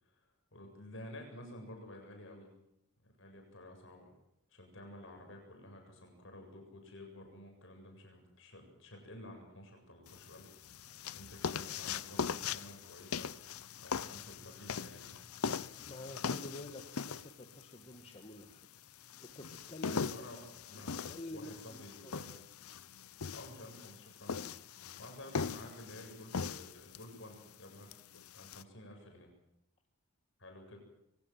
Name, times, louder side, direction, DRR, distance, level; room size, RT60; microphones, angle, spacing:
voice 1, 0.1-2.5 3.0-4.1 4.5-10.6 10.8-13.3 13.8-15.2 19.9-22.4 23.3-24.4 25.0-27.9 28.3-29.3 30.4-30.8, left 1 dB, 55° left, 3 dB, 7.7 m, -51 dB
sound 1, 10.1-28.6, left 6 dB, 75° left, 0.8 m, -41 dB
voice 2, 15.8-18.7 19.2-20.0 20.7-22.2 24.3-24.5, left 1 dB, 25° left, 4 dB, 1.7 m, -49 dB
24.0 x 18.5 x 7.6 m, 0.81 s
head